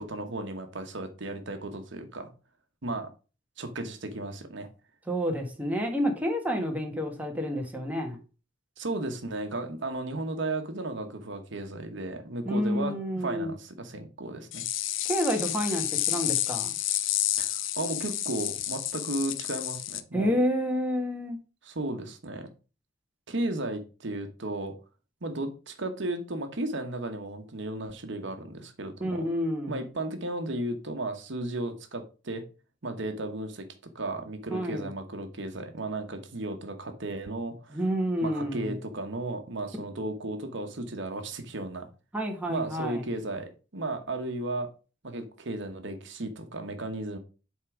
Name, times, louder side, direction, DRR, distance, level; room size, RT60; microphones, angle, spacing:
voice 1, 0.0-2.3 2.8-3.1 3.6-4.7 8.8-14.6 17.4-20.3 21.6-22.5 23.3-24.7 25.2-29.3 29.7-32.4 32.8-33.6 33.9-37.8 38.2-41.9 42.5-44.7 45.0-47.2, right 2 dB, 65° right, 6 dB, 1.1 m, -34 dB
voice 2, 5.1-8.2 12.4-13.5 15.0-16.7 20.1-21.4 29.0-29.8 34.5-34.9 37.7-38.7 42.1-43.0, equal, 10° right, 2 dB, 1.4 m, -29 dB
sound 1, 14.5-20.0, left 13 dB, 75° left, 0.6 m, -30 dB
8.1 x 3.7 x 4.9 m, 0.34 s
head